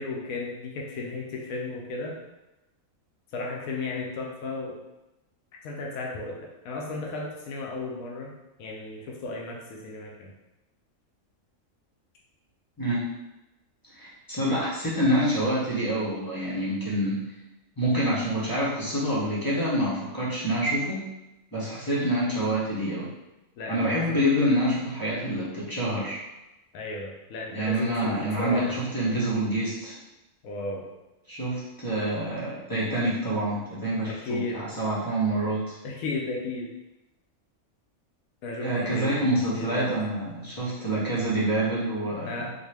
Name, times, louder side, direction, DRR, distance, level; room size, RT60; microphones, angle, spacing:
voice 1, 0.0-2.1 3.3-4.8 5.6-8.3 8.6-10.3 23.6-24.2 26.7-28.7 30.4-30.8 34.1-34.6 35.8-36.7 38.4-39.9 42.3-42.5, left 3 dB, 80° left, -1 dB, 1.0 m, -34 dB
voice 2, 14.0-17.2 17.8-21.0 21.5-23.1 23.7-26.2 27.5-29.9 31.3-35.7 38.6-42.5, right 1 dB, 20° left, -8 dB, 0.6 m, -27 dB
3.9 x 2.2 x 3.3 m, 0.99 s
omnidirectional pair, 1.5 m